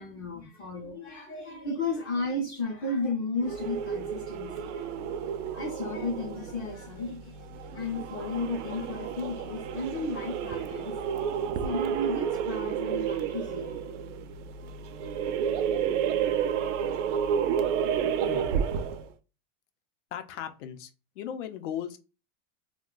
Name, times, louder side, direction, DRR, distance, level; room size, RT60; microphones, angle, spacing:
voice 1, 0.0-4.9 5.4-13.8, left 2 dB, 30° left, 0.5 m, -34 dB
sound 1, 3.4-19.1, right 8 dB, 75° right, 0.5 m, -31 dB
voice 2, 20.1-22.0, left 9 dB, 75° left, 0.7 m, -37 dB
2.4 x 2.2 x 3.7 m
supercardioid pair, 175°, 37 cm